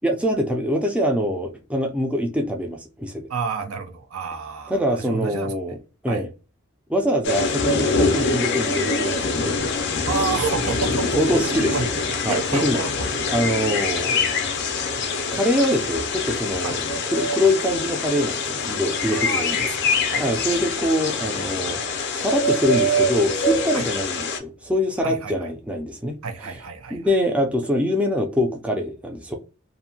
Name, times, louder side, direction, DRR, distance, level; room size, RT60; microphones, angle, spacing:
voice 1, 0.0-3.3 4.7-5.8 6.0-6.3 6.9-9.6 11.2-11.9 12.2-12.8 13.3-14.4 15.3-16.8 17.1-19.6 20.2-21.8 22.1-26.2 26.9-29.4, equal, 5° right, 0.3 m, -24 dB
voice 2, 3.3-5.5 6.1-6.2 10.1-11.9 12.3-13.1 16.6-16.8 19.1-20.5 23.7-23.8 25.0-25.5 26.2-27.1, right 5 dB, 80° right, 0.6 m, -30 dB
sound 1, 7.2-24.4, left 3 dB, 55° left, 0.5 m, -24 dB
2.6 x 2.1 x 2.7 m
head